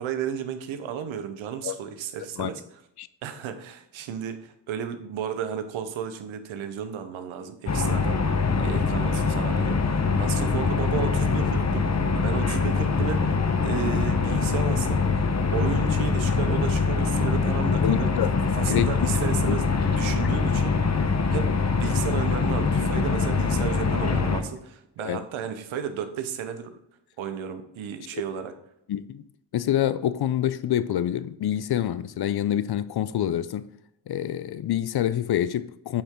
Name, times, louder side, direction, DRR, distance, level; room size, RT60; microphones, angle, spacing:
voice 1, 0.0-2.6 3.2-8.2 8.6-13.3 13.6-15.0 15.5-18.1 18.6-20.8 21.3-26.8 27.2-28.5, right 8 dB, 85° right, 0.9 m, -33 dB
sound 1, 7.7-24.4, left 4 dB, 35° left, 1.1 m, -23 dB
voice 2, 8.4-8.7 17.8-18.3 18.7-18.9 19.5-19.6 25.0-25.3 28.9-29.2 29.5-33.7 34.1-36.0, left 11 dB, 55° left, 0.6 m, -26 dB
8.5 x 5.3 x 3.7 m
supercardioid pair, 45°, 47 cm